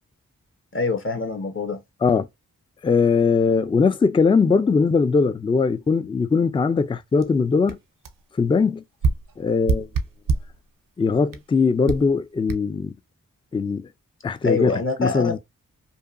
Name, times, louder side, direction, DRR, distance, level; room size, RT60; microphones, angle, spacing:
voice 1, 0.7-1.8 14.4-15.4, left 4 dB, 40° left, 0.9 m, -25 dB
voice 2, 2.8-7.8 8.3-8.8 9.4-9.9 11.0-12.9 13.5-13.9 14.2-15.4, left 5 dB, 15° left, 0.3 m, -20 dB
sound 1, 7.2-7.3 7.7-7.8 8.0-8.2 9.0-10.6 11.3-11.5 11.9-12.1 12.5-12.6, right 4 dB, 75° right, 0.6 m, -25 dB
2.8 x 2.2 x 2.4 m
cardioid pair, 45°, 34 cm